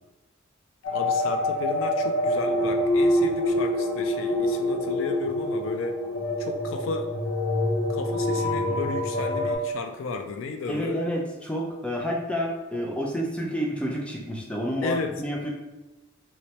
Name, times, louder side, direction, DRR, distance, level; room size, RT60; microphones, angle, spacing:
sound 1, 0.8-9.6, left 1 dB, 90° left, 1.1 m, -26 dB
voice 1, 0.9-6.0 6.4-7.1 7.9-11.0 14.8-15.1, left 4 dB, 70° left, 6 dB, 0.4 m, -33 dB
voice 2, 10.7-15.5, equal, 5° left, -1 dB, 0.4 m, -29 dB
3.2 x 3.0 x 2.8 m, 1.0 s
head